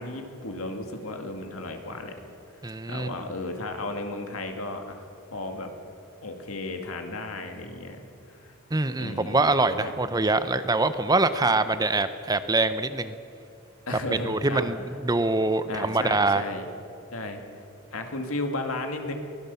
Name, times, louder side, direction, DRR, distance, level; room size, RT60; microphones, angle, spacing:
voice 1, 0.0-2.1 2.9-5.0 5.3-5.7 6.2-8.0 8.3-8.5 9.0-9.9 11.4-11.5 13.9-14.7 15.7-16.7 17.1-17.7 17.9-19.1, left 2 dB, 90° left, 5 dB, 2.2 m, -34 dB
voice 2, 2.6-3.1 8.7-13.2 13.9-16.4, right 2 dB, 20° right, 11 dB, 0.7 m, -24 dB
23.0 x 16.5 x 7.0 m, 2.6 s
head